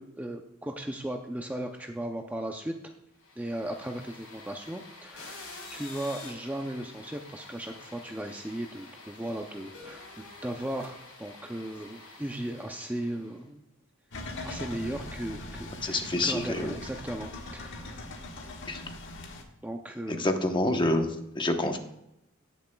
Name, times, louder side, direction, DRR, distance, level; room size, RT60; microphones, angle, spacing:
voice 1, 0.0-2.7 3.4-13.7 14.4-18.1 19.6-20.3, right 1 dB, 10° right, 3 dB, 0.5 m, -37 dB
sound 1, 3.2-13.4, left 3 dB, 80° left, 3.6 m, -48 dB
sound 2, 14.1-19.4, left 2 dB, 60° left, 1.4 m, -41 dB
voice 2, 15.8-16.7 18.7-18.8 20.1-21.1 21.3-21.8, left 1 dB, 25° left, 5 dB, 0.9 m, -27 dB
17.5 x 7.0 x 2.3 m, 0.86 s
head